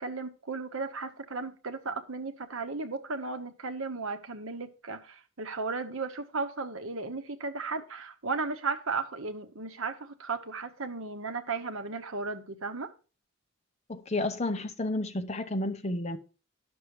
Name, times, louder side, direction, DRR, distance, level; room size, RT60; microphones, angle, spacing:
voice 1, 0.0-12.9, right 4 dB, 65° right, 1.0 m, -35 dB
voice 2, 13.9-16.2, left 2 dB, 30° left, 0.7 m, -31 dB
11.5 x 6.2 x 4.9 m
head